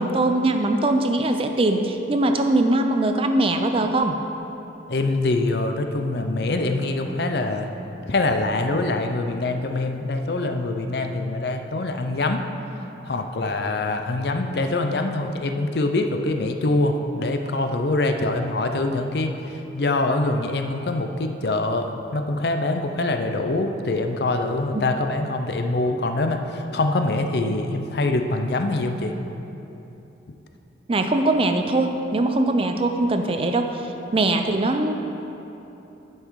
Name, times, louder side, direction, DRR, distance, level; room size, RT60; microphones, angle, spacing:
voice 1, 0.0-4.2 24.7-24.9 30.9-35.0, right 2 dB, 30° right, 6 dB, 0.4 m, -21 dB
voice 2, 4.9-7.7 8.1-12.5 13.0-29.1, left 2 dB, 60° left, 5 dB, 0.6 m, -24 dB
10.5 x 5.6 x 4.7 m, 3.0 s
head